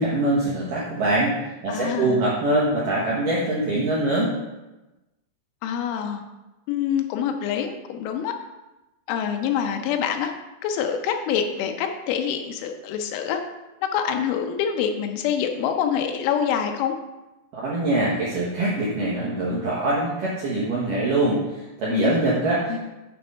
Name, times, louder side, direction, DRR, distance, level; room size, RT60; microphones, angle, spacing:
voice 1, 0.0-4.3 17.5-22.8, right 2 dB, 70° right, -7 dB, 2.0 m, -23 dB
voice 2, 1.7-2.2 5.6-6.2 6.7-8.3 9.1-10.3 10.6-13.4 13.8-16.9 21.9-22.2 22.7-22.8, left 8 dB, 80° left, 5 dB, 3.0 m, -26 dB
7.7 x 5.1 x 5.4 m, 1.0 s
omnidirectional pair, 5.7 m